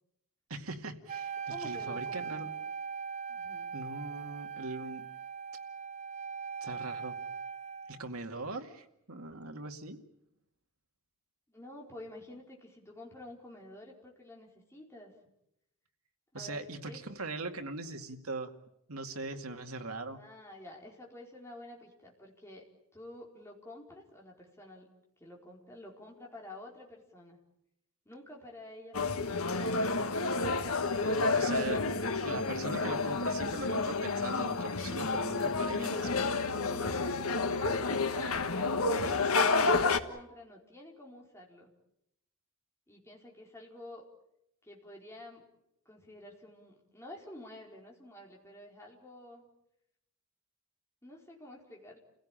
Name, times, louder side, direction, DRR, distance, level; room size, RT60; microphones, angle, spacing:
voice 1, 0.5-2.5 3.7-5.0 6.6-7.2 7.9-10.0 16.3-18.5 18.9-20.2 31.4-31.8 32.2-36.3, right 3 dB, 85° right, 5 dB, 2.3 m, -40 dB
Wind instrument woodwind instrument, 1.1-8.0, right 6 dB, 35° right, 0.9 m, -40 dB
voice 2, 1.5-2.5 3.3-3.7 11.5-15.1 16.3-17.0 20.1-22.6 22.9-24.9 25.2-27.4 28.0-29.3 35.7-36.2 36.6-41.7 42.9-44.0 44.6-45.4 45.8-49.4 51.0-52.0, left 1 dB, 15° left, -1 dB, 4.6 m, -50 dB
sound 1, 28.9-40.0, left 3 dB, 85° left, 1.5 m, -30 dB
29.5 x 17.0 x 9.0 m, 0.81 s
head